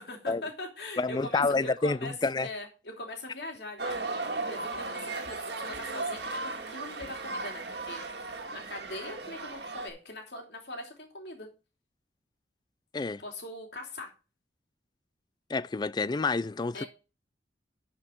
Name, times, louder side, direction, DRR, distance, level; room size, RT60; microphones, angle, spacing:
voice 1, 0.0-2.1 2.4-4.0 4.5-8.0 8.5-11.5 13.2-14.1 16.7-16.9, left 2 dB, 65° left, 3.0 m, -41 dB
voice 2, 1.0-2.5 12.9-13.2 15.5-16.8, left 3 dB, 25° left, 0.3 m, -28 dB
sound 1, 3.8-9.9, right 3 dB, 65° right, 1.8 m, -36 dB
11.5 x 5.3 x 4.4 m
head